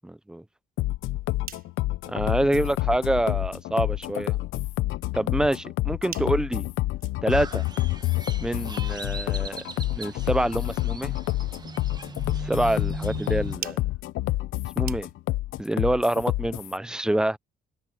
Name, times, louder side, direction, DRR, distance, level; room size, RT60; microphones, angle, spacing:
voice 1, 0.0-0.4 2.1-4.4 5.1-6.7 7.2-7.6 8.4-9.6 9.9-11.1 12.4-13.8 14.8-15.1 15.6-17.4, right 1 dB, 5° right, 0.5 m, -26 dB
sound 1, 0.8-16.8, left 17 dB, 85° left, 0.8 m, -28 dB
sound 2, 1.1-15.5, right 7 dB, 50° right, 4.7 m, -48 dB
Crow, 7.3-13.6, right 3 dB, 20° right, 1.4 m, -39 dB
open air
cardioid pair, 90°, 20 cm